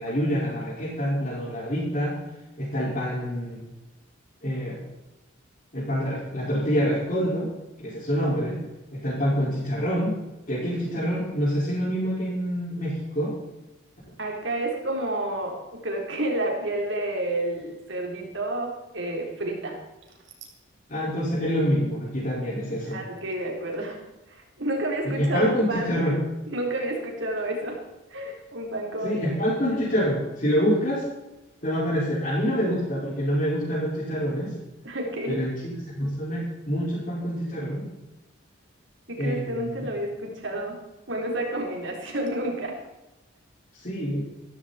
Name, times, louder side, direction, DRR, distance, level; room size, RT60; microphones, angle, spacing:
voice 1, 0.0-2.2 2.6-3.6 4.4-4.8 5.7-7.5 7.8-8.6 8.9-10.1 10.5-13.3 20.9-23.0 25.0-26.2 29.0-31.0 31.6-34.5 35.3-37.8 39.2-39.8 43.8-44.2, equal, 40° left, -9 dB, 5.3 m, -26 dB
voice 2, 14.2-19.8 22.9-24.0 24.3-26.0 26.5-27.8 28.1-29.2 29.7-29.8 34.8-35.4 39.1-40.8 41.1-42.7, right 1 dB, 65° right, 1 dB, 4.0 m, -30 dB
15.5 x 14.5 x 4.4 m, 1.0 s
head